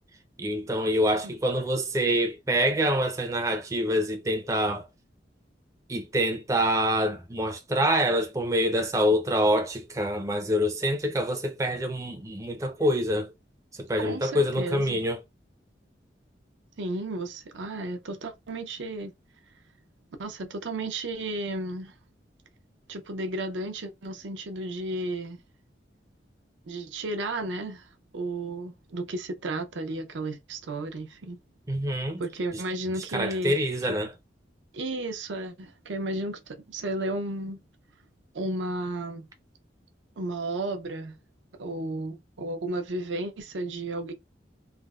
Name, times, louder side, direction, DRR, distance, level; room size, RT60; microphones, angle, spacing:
voice 1, 0.4-4.9 5.9-13.3 13.8-15.2 31.7-32.2 32.5-32.6 33.1-34.1, equal, 15° right, 0.4 m, -26 dB
voice 2, 14.0-15.0 16.8-19.1 20.2-21.9 22.9-25.4 26.7-27.9 28.1-31.4 32.2-33.6 33.9-34.0 34.7-37.6 38.3-39.3 40.2-41.2 41.6-44.1, right 2 dB, 90° right, 0.6 m, -33 dB
3.2 x 2.0 x 2.3 m
head